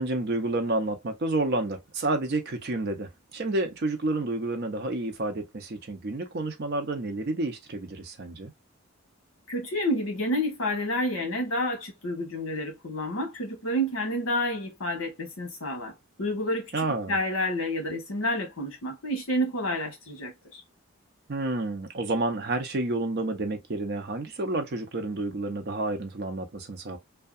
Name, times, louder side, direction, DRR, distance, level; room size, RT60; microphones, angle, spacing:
voice 1, 0.0-8.5 16.7-17.2 21.3-27.0, right 2 dB, 50° right, 0.6 m, -30 dB
voice 2, 9.5-15.9 16.2-20.6, equal, 65° left, 1.1 m, -29 dB
2.7 x 2.2 x 2.3 m
head